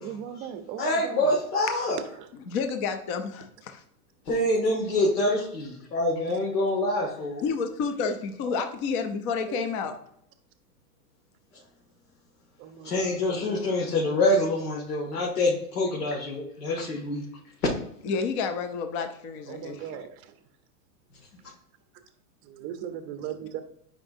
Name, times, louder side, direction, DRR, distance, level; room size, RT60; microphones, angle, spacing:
voice 1, 0.0-1.3 8.5-8.6 9.5-9.6 12.6-13.2 19.5-20.1 22.5-23.6, right 10 dB, 30° right, 10 dB, 0.6 m, -37 dB
voice 2, 0.8-2.0 4.3-7.5 12.8-17.2, left 1 dB, 80° left, -3 dB, 2.0 m, -26 dB
voice 3, 2.3-3.8 7.4-9.9 18.0-20.1, left 5 dB, 25° left, 8 dB, 0.3 m, -30 dB
9.8 x 5.0 x 2.6 m, 0.71 s
supercardioid pair, 140°, 46 cm